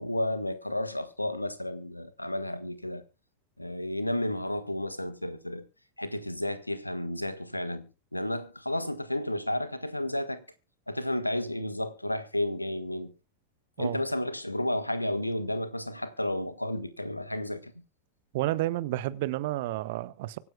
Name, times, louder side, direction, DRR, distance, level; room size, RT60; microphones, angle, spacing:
voice 1, 0.0-3.0 3.6-5.6 6.0-10.4 10.9-13.1 13.8-17.7, left 1 dB, 85° left, 1.5 m, -32 dB
voice 2, 18.3-20.4, right 16 dB, 50° right, 1.0 m, -30 dB
24.5 x 9.2 x 2.3 m
figure-of-eight pair, 90°, 0 cm